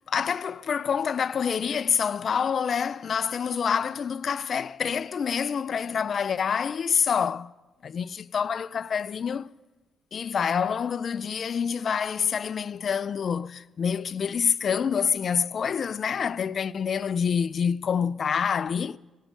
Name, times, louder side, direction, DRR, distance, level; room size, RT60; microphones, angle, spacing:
voice 1, 0.1-7.5 7.8-9.5 10.1-19.0, left 7 dB, 55° left, 0.4 m, -27 dB
15.0 x 6.4 x 8.7 m
cardioid pair, 75°, 0 cm